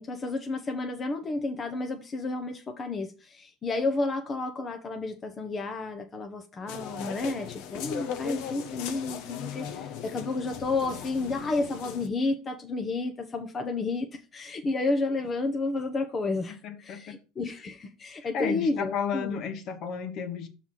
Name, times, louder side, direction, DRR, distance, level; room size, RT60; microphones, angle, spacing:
voice 1, 0.0-19.4, left 3 dB, 25° left, 0.9 m, -31 dB
sound 1, 6.7-12.1, left 8 dB, 65° left, 0.9 m, -38 dB
voice 2, 16.5-17.2 18.2-20.5, left 6 dB, 50° left, 1.3 m, -33 dB
5.8 x 4.1 x 6.2 m
supercardioid pair, 110°, 0 cm